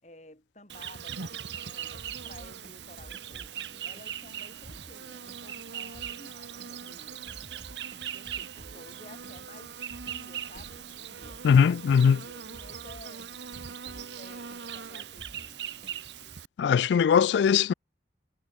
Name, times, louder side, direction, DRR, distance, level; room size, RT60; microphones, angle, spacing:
voice 1, 0.0-7.4 8.1-9.8 10.1-13.3 13.9-15.7, left 1 dB, 40° left, 5.1 m, -53 dB
Insect, 0.7-16.5, right 8 dB, 85° right, 1.0 m, -40 dB
sound 1, 1.1-16.4, right 1 dB, 50° right, 2.0 m, -53 dB
voice 2, 11.4-12.2 16.6-17.7, left 7 dB, 80° left, 0.3 m, -20 dB
head